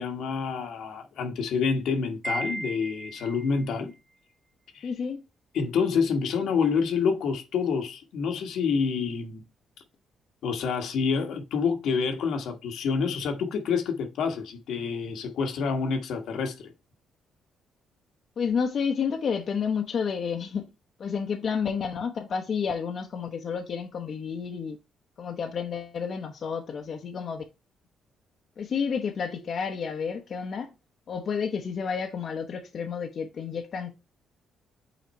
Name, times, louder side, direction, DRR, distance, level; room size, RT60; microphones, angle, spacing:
voice 1, 0.0-3.9 4.7-4.9 5.5-9.4 10.4-16.7, left 5 dB, 75° left, 1.3 m, -27 dB
Wind chime, 2.2-3.6, right 2 dB, 20° right, 0.4 m, -35 dB
voice 2, 4.8-5.2 18.4-20.7 21.0-24.8 25.2-27.4 28.6-30.7 31.1-33.9, left 6 dB, 55° left, 0.9 m, -30 dB
5.9 x 4.3 x 4.2 m
cardioid pair, 90°, 0 cm